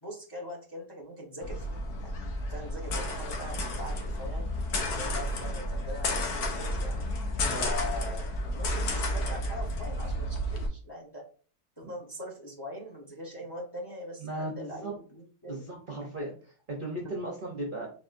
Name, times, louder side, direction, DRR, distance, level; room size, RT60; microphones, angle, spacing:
voice 1, 0.0-2.1 2.5-4.5 4.9-7.0 7.6-11.2 11.8-15.6 16.9-17.0, left 1 dB, 20° left, -2 dB, 0.8 m, -42 dB
sound 1, 1.4-10.7, left 1 dB, 80° left, 1.3 m, -31 dB
voice 2, 14.2-14.9 15.5-17.9, right 1 dB, 45° right, -1 dB, 0.7 m, -37 dB
4.1 x 3.7 x 2.5 m, 0.40 s
omnidirectional pair, 1.7 m